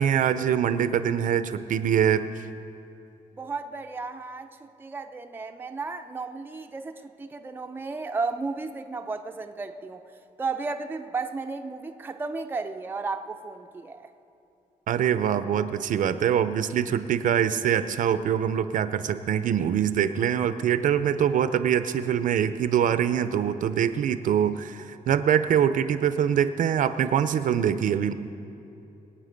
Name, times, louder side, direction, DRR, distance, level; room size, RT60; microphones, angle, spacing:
voice 1, 0.0-2.3 14.9-28.1, right 9 dB, 65° right, 12 dB, 0.5 m, -24 dB
voice 2, 3.3-10.0 10.4-14.1, right 4 dB, 15° right, 5 dB, 0.5 m, -34 dB
22.0 x 8.8 x 5.2 m, 2.8 s
wide cardioid pair, 165°, 15 cm